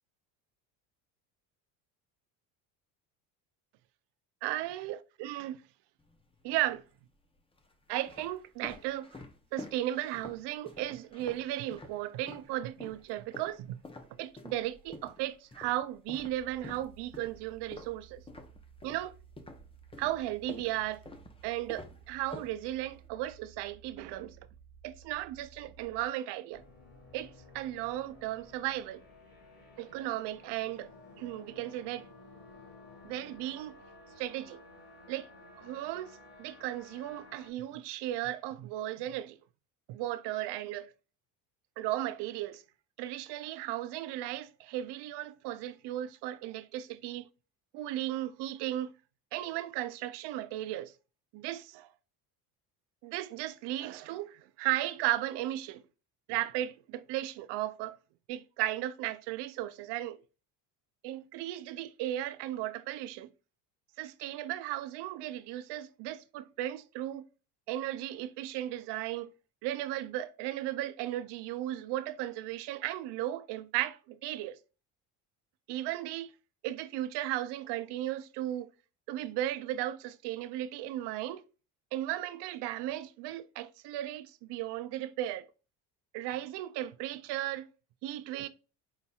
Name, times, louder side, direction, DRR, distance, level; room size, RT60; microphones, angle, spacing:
voice 1, 4.4-5.6 6.4-6.8 7.9-9.2 9.5-13.8 14.2-18.2 18.8-19.1 20.0-21.0 21.4-24.4 24.8-26.6 27.1-29.0 29.8-30.9 31.2-32.1 33.0-33.7 34.2-34.6 35.1-35.3 35.6-39.4 39.9-40.9 41.8-42.6 43.0-47.3 47.7-48.9 49.3-50.9 51.3-51.9 53.0-55.8 56.3-58.0 58.3-60.2 61.0-63.3 64.0-67.2 67.7-69.3 69.6-74.6 75.7-76.3 76.6-78.7 79.1-81.5 81.9-85.5 86.1-87.7 88.0-88.5, right 14 dB, 60° right, 0.6 m, -35 dB
sound 1, 6.0-6.7 7.4-12.5 12.8-19.1 19.4-23.1, left 2 dB, 10° left, 0.6 m, -49 dB
sound 2, 16.3-26.1, right 8 dB, 80° left, 1.6 m, -56 dB
sound 3, 26.5-37.5, left 2 dB, 30° left, 1.7 m, -54 dB
4.0 x 4.0 x 2.3 m
supercardioid pair, 75°, 48 cm